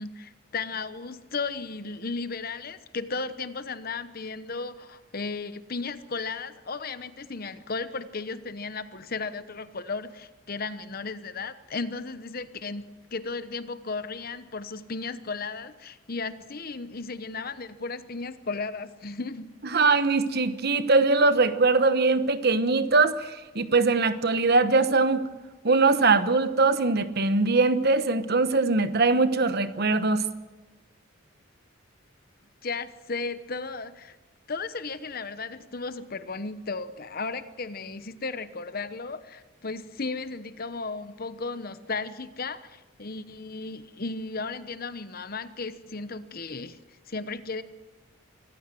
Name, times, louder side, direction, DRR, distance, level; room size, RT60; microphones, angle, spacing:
voice 1, 0.0-12.8 13.1-19.5 19.7-19.9 32.6-34.2 34.5-46.8 47.1-47.6, left 4 dB, 45° left, 13 dB, 0.9 m, -35 dB
voice 2, 19.7-25.3 25.6-30.2, right 3 dB, 50° right, 11 dB, 1.1 m, -22 dB
25.0 x 15.0 x 7.7 m, 1.1 s
head